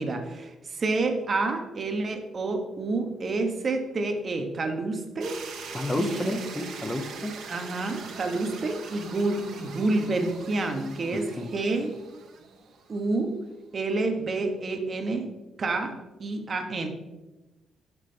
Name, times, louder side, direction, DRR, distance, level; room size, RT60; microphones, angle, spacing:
voice 1, 0.0-6.4 7.5-12.0 12.9-13.4 13.7-15.3 15.6-16.9, right 3 dB, 40° right, 5 dB, 0.9 m, -29 dB
sound 1, 5.2-13.2, right 5 dB, 75° right, 1.0 m, -42 dB
voice 2, 5.7-7.4 11.1-11.5, left 1 dB, 15° left, 6 dB, 0.6 m, -31 dB
6.4 x 6.1 x 3.3 m, 1.0 s
cardioid pair, 90°, 0 cm